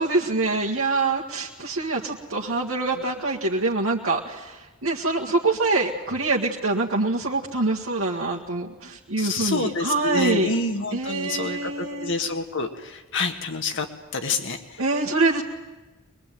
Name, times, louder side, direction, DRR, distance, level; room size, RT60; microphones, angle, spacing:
voice 1, 0.0-10.6 10.9-12.1 14.8-15.4, right 3 dB, 75° right, -2 dB, 1.9 m, -25 dB
voice 2, 9.2-12.7 13.1-13.9 14.1-14.6, left 3 dB, 65° left, 6 dB, 2.1 m, -27 dB
22.0 x 22.0 x 9.3 m, 1.1 s
head